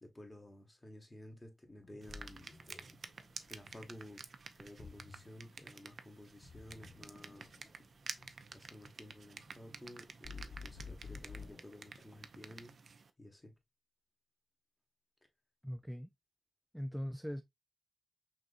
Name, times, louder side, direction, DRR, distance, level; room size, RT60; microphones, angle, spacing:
voice 1, 0.0-2.5 3.5-4.2 4.5-7.5 8.5-12.7 13.2-13.5, left 1 dB, 20° left, 1.4 m, -53 dB
Ocean, 1.6-12.4, left 2 dB, 50° left, 1.0 m, -58 dB
sound 1, 2.0-13.1, right 5 dB, 70° right, 0.5 m, -51 dB
sound 2, 10.2-11.5, left 5 dB, 75° left, 0.5 m, -47 dB
voice 2, 15.6-16.1 16.7-17.4, equal, ahead, 0.3 m, -40 dB
5.9 x 2.6 x 2.5 m
wide cardioid pair, 90°, 0 cm